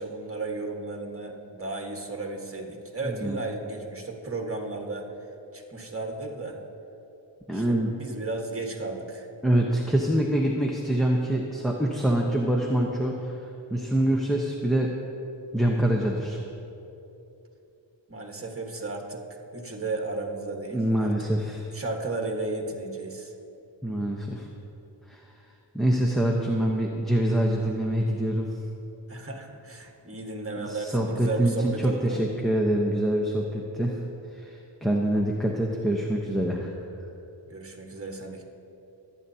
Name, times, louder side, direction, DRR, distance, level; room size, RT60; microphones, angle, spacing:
voice 1, 0.0-5.1 5.5-6.6 7.5-9.3 18.1-19.2 19.5-21.3 21.7-23.3 29.1-32.2 37.5-38.4, right 3 dB, 30° right, 1 dB, 1.5 m, -34 dB
voice 2, 7.5-7.9 9.4-13.2 13.7-14.9 15.5-16.4 20.7-21.7 23.8-24.5 25.1-25.2 25.7-28.5 30.6-33.9 34.3-36.7, right 1 dB, ahead, -1 dB, 0.9 m, -25 dB
23.0 x 9.0 x 2.8 m, 2.9 s
wide cardioid pair, 80°, 46 cm